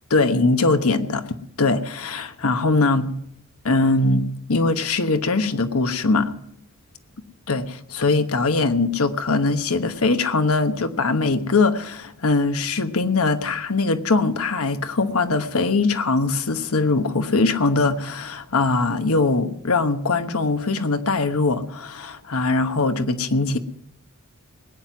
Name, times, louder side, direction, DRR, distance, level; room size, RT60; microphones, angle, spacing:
voice 1, 0.1-1.2 1.6-3.1 3.6-6.4 7.5-23.6, left 3 dB, 75° left, 9 dB, 1.1 m, -21 dB
19.5 x 9.3 x 6.0 m, 0.70 s
head